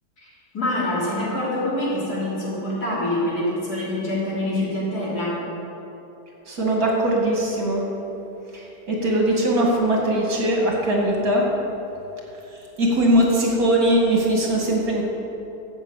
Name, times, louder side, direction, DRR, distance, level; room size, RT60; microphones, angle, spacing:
voice 1, 0.5-5.4, left 1 dB, 70° left, -6 dB, 3.9 m, -25 dB
voice 2, 6.5-7.8 8.5-11.5 12.5-15.0, right 1 dB, 60° right, -2 dB, 2.8 m, -21 dB
12.5 x 7.9 x 8.2 m, 3.0 s
omnidirectional pair, 1.7 m